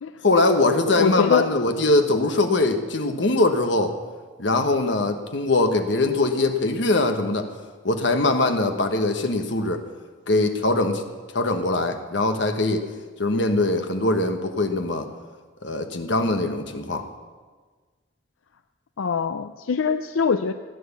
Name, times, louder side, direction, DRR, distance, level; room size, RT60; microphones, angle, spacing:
voice 1, 0.2-4.0 4.4-7.5 7.8-9.8 10.3-11.0 11.3-12.8 13.2-15.1 15.6-17.0, left 2 dB, 65° left, 6 dB, 1.2 m, -22 dB
voice 2, 0.9-1.5 19.0-20.5, left 5 dB, 85° left, 9 dB, 0.5 m, -23 dB
15.5 x 9.4 x 7.1 m, 1.4 s
head